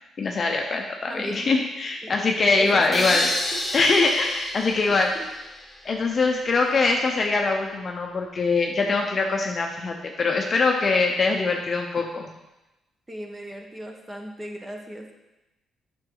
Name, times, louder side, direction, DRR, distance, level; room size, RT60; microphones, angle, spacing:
voice 1, 0.2-3.3 3.7-5.1 5.8-12.3, left 3 dB, 40° left, 2 dB, 0.7 m, -23 dB
voice 2, 1.1-1.5 2.0-2.1 2.5-3.6 5.1-5.3 13.1-15.1, right 1 dB, 15° right, 2 dB, 1.2 m, -36 dB
sound 1, 2.9-5.9, left 2 dB, 25° left, 1.3 m, -30 dB
7.7 x 6.0 x 3.9 m, 1.0 s
cardioid pair, 90°, 0 cm